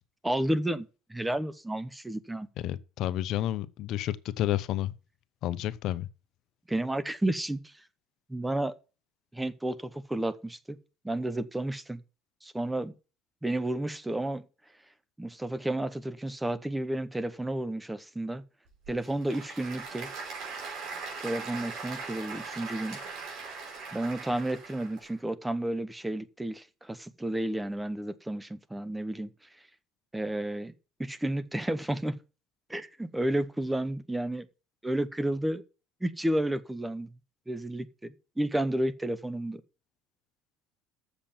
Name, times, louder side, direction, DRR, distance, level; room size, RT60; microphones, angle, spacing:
voice 1, 0.2-2.5 6.7-7.6 8.3-8.7 9.3-10.8 11.0-12.0 12.4-12.9 13.4-14.4 15.2-18.4 18.9-20.1 21.2-23.0 23.9-29.3 30.1-30.7 31.0-32.2 32.7-34.5 34.8-35.6 36.0-37.1 37.5-39.6, right 1 dB, 10° right, 0.9 m, -31 dB
voice 2, 2.6-4.9 5.4-6.1, left 13 dB, 60° left, 0.8 m, -30 dB
Applause / Crowd, 18.7-25.1, right 4 dB, 65° right, 5.3 m, -40 dB
7.3 x 6.8 x 7.3 m
supercardioid pair, 100°, 0 cm